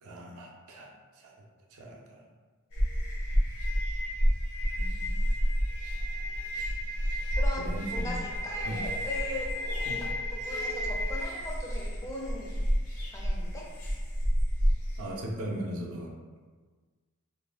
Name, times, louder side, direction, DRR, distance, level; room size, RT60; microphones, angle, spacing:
voice 1, 0.0-0.9 1.2-1.3 1.7-2.2 4.8-5.2 7.6-8.1 8.6-8.8 9.9-10.0 15.0-16.1, right 1 dB, 70° right, 0 dB, 0.5 m, -38 dB
sound 1, 2.7-15.0, equal, 75° left, 0.7 m, -30 dB
voice 2, 7.4-9.5 10.0-12.5 13.1-13.7, left 1 dB, 15° left, -3 dB, 0.4 m, -39 dB
2.5 x 2.2 x 3.2 m, 1.4 s
head